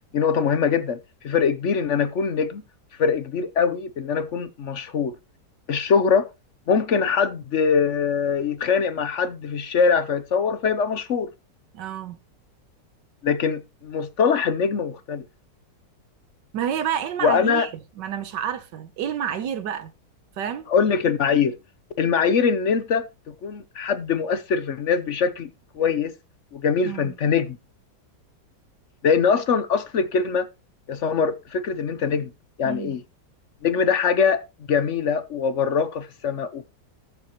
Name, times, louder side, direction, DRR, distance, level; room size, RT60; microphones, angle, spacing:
voice 1, 0.1-1.0 1.2-2.6 3.0-5.1 5.7-6.3 6.7-11.3 13.2-15.2 17.2-17.7 20.7-21.6 22.0-25.5 25.7-26.1 26.5-27.6 29.0-30.5 30.9-32.3 32.6-33.0 33.6-34.4 34.7-36.7, left 6 dB, 55° left, 0.9 m, -22 dB
voice 2, 11.7-12.2 16.5-17.7 18.0-19.9 20.4-20.6 26.8-27.1 32.6-33.0, right 9 dB, 80° right, 1.5 m, -29 dB
19.0 x 7.1 x 3.0 m
omnidirectional pair, 1.9 m